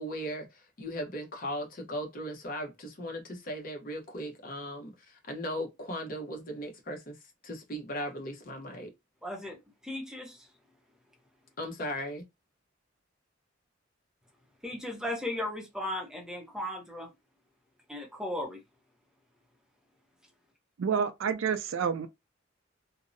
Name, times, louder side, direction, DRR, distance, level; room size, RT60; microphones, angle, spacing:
voice 1, 0.0-7.2 7.4-8.9 11.6-12.2, equal, 45° left, 0.7 m, -37 dB
voice 2, 9.2-9.6 9.8-10.5 14.6-17.1 17.9-18.6, left 1 dB, 5° right, 0.6 m, -36 dB
voice 3, 20.8-22.1, right 6 dB, 80° right, 0.4 m, -29 dB
2.6 x 2.0 x 2.5 m
head